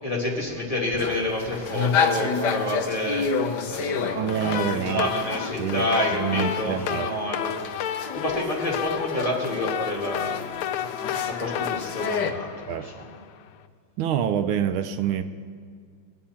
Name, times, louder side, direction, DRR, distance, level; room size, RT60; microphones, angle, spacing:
voice 1, 0.0-7.5 8.1-10.5 11.3-13.0, left 1 dB, 15° left, -3 dB, 2.1 m, -29 dB
sound 1, 1.0-6.9 7.4-12.3, left 5 dB, 60° left, 1.3 m, -30 dB
voice 2, 4.1-5.1 5.6-7.1 12.2-12.3 12.7-12.9 14.0-15.2, right 9 dB, 80° right, 10 dB, 1.5 m, -27 dB
sound 2, 4.3-13.4, left 10 dB, 85° left, 1.5 m, -32 dB
22.0 x 9.0 x 4.3 m, 2.1 s
omnidirectional pair, 2.2 m